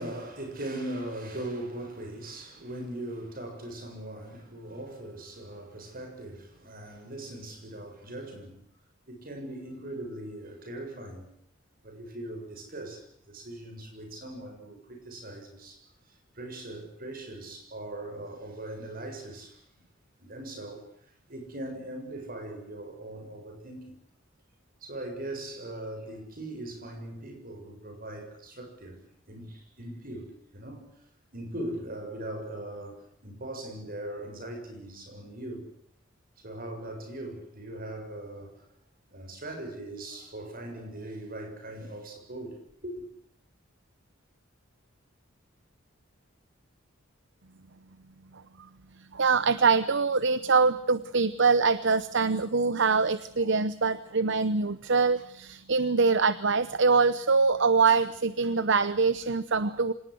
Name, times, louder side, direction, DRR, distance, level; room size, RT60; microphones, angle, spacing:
voice 1, 0.0-8.6 9.1-11.3 11.8-19.6 20.2-20.8 21.3-24.0 24.8-29.0 29.3-30.9 31.3-35.7 36.4-38.6 39.1-42.6 42.8-43.1, right 1 dB, 45° right, 7.2 m, -40 dB
voice 2, 49.1-59.9, right 4 dB, 60° right, 0.9 m, -24 dB
26.0 x 18.5 x 7.9 m
head